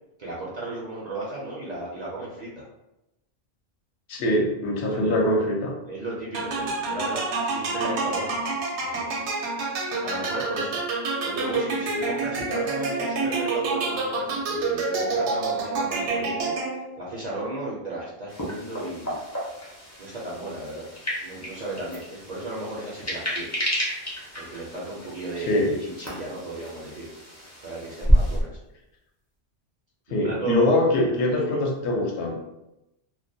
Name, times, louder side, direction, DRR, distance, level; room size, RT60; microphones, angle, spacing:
voice 1, 0.2-2.6 4.9-5.2 5.9-8.4 8.8-9.1 10.0-10.8 11.2-19.2 20.0-20.9 21.2-23.5 24.4-27.1 27.6-28.6 30.1-30.8 31.5-31.6, right 2 dB, 55° right, -6 dB, 0.5 m, -35 dB
voice 2, 4.1-5.7 25.4-25.7 30.1-32.4, left 1 dB, 75° left, 0 dB, 0.8 m, -23 dB
sound 1, 6.3-17.0, right 3 dB, 80° right, 0.9 m, -28 dB
sound 2, 18.3-28.4, equal, 20° left, 0.4 m, -30 dB
2.3 x 2.1 x 2.6 m, 0.91 s
omnidirectional pair, 1.2 m